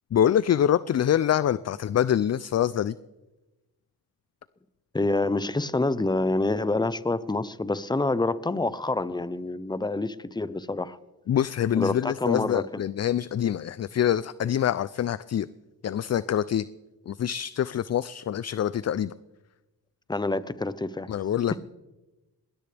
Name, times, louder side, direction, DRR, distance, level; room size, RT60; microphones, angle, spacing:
voice 1, 0.1-3.0 11.3-15.5 15.8-16.7 17.1-19.1 21.1-21.6, left 10 dB, 45° left, 17 dB, 0.4 m, -25 dB
voice 2, 4.9-11.0 11.8-12.8 20.1-21.1, left 2 dB, 10° left, 15 dB, 0.7 m, -27 dB
20.5 x 20.0 x 3.4 m, 1.1 s
cardioid pair, 70°, 38 cm